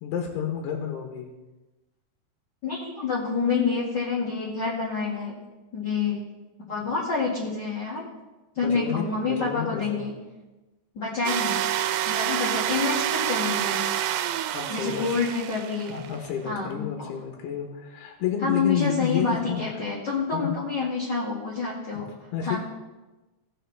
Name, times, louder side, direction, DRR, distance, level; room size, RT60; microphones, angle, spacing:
voice 1, 0.0-1.3 8.6-10.0 14.5-15.2 15.9-19.8 20.3-20.6 21.9-22.0 22.3-22.6, left 8 dB, 90° left, 1 dB, 3.1 m, -30 dB
voice 2, 2.6-5.4 5.7-6.2 6.7-8.1 8.6-10.1 10.9-11.6 12.1-13.8 14.7-16.0 16.4-17.1 18.4-22.0 22.4-22.6, left 4 dB, 40° left, -8 dB, 1.8 m, -27 dB
sound 1, 11.3-16.3, right 11 dB, 85° right, 2.6 m, -28 dB
18.0 x 6.4 x 3.3 m, 1.1 s
omnidirectional pair, 4.5 m